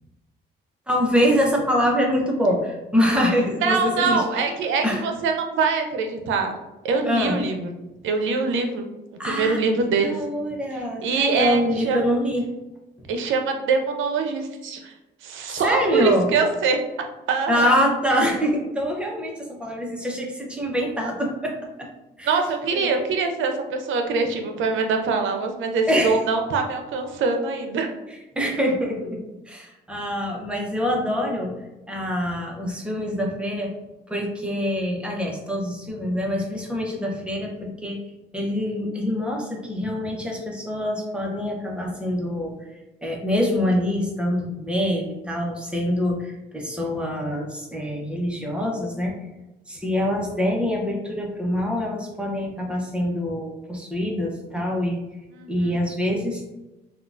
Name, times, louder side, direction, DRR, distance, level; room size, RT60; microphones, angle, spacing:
voice 1, 0.9-4.2 4.8-5.0 7.0-7.4 9.2-9.6 10.0-12.4 15.5-16.3 17.5-21.9 22.2-22.4 22.7-22.9 25.9-26.2 28.4-31.6 31.9-33.7 34.1-38.0 38.3-42.5 43.0-49.1 49.7-55.0 55.5-56.4, equal, 5° right, -1 dB, 0.8 m, -25 dB
voice 2, 3.6-6.5 6.8-7.7 8.0-8.9 9.2-10.1 11.0-12.0 13.1-14.9 15.2-16.8 17.3-17.7 22.2-27.9 55.3-55.7, right 4 dB, 80° right, 4 dB, 0.6 m, -24 dB
3.6 x 2.4 x 2.4 m, 1.0 s
cardioid pair, 90°, 20 cm